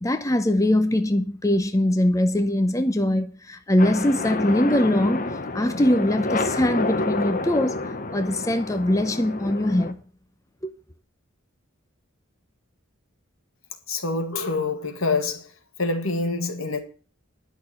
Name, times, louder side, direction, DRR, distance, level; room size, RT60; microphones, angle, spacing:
voice 1, 0.0-5.3 5.5-7.8 8.1-10.0, left 1 dB, 15° left, 0.7 m, -22 dB
sound 1, 3.8-9.9, left 2 dB, 40° left, 1.2 m, -29 dB
voice 2, 13.9-15.5 15.8-16.8, left 3 dB, 80° left, 2.1 m, -26 dB
11.0 x 6.4 x 8.2 m
head